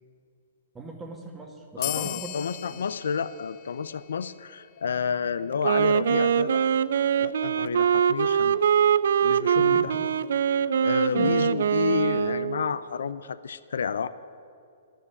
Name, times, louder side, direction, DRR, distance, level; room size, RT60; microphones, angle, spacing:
voice 1, 0.7-2.3 2.7-2.8 9.6-10.1 11.1-11.5, right 3 dB, 15° right, 2 dB, 2.0 m, -40 dB
voice 2, 1.8-6.6 7.2-8.7 9.2-9.9 10.5-14.1, left 6 dB, 80° left, 14 dB, 0.5 m, -30 dB
sound 1, 1.8-4.8, left 17 dB, 40° left, 0.7 m, -38 dB
Wind instrument woodwind instrument, 5.5-12.7, right 8 dB, 70° right, 0.4 m, -23 dB
11.5 x 10.0 x 9.8 m, 2.4 s
hypercardioid pair, 135°, 0 cm